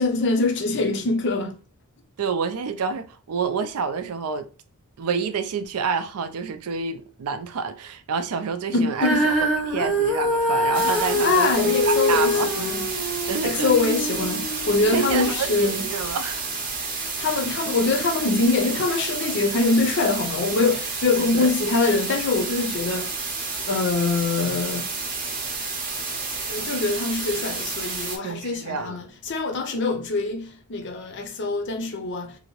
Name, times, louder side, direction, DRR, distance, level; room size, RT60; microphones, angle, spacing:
voice 1, 0.0-1.6 8.7-9.2 11.2-12.9 13.4-15.8 17.2-23.2 23.7-24.9 26.1-32.4, left 3 dB, 55° left, 0.5 m, -24 dB
voice 2, 2.2-4.5 5.0-9.3 9.6-12.5 12.9-13.0 13.3-13.7 14.9-16.5 17.2-17.3 17.6-17.7 21.2-21.6 28.2-29.0, right 5 dB, 80° right, 0.4 m, -28 dB
Female singing, 9.0-15.3 16.0-16.1, equal, ahead, 0.7 m, -24 dB
sound 1, 10.7-28.2, right 4 dB, 40° right, 0.7 m, -30 dB
2.8 x 2.5 x 3.0 m
head